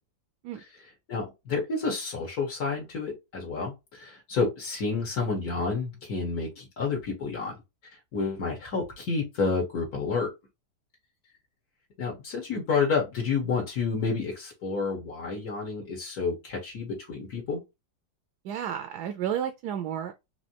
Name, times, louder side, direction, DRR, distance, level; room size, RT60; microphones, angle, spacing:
voice 1, 1.1-7.5 8.1-10.3 12.0-17.6, left 4 dB, 65° left, 1.7 m, -30 dB
voice 2, 18.4-20.1, right 9 dB, 80° right, 1.1 m, -32 dB
4.2 x 2.7 x 2.9 m
omnidirectional pair, 1.7 m